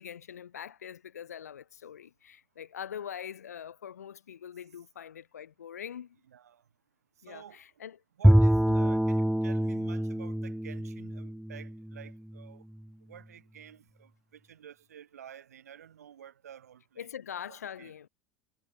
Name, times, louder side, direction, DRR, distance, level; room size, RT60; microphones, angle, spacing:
voice 1, 0.0-6.2 7.2-8.0 8.7-8.9 17.0-18.1, left 9 dB, 75° left, 5.0 m, -43 dB
voice 2, 6.3-6.6 7.3-7.7 8.2-12.7 13.1-17.1 17.5-17.9, right 9 dB, 75° right, 7.3 m, -51 dB
Bowed string instrument, 8.2-12.5, equal, ahead, 0.9 m, -25 dB
figure-of-eight pair, 80°, 8 cm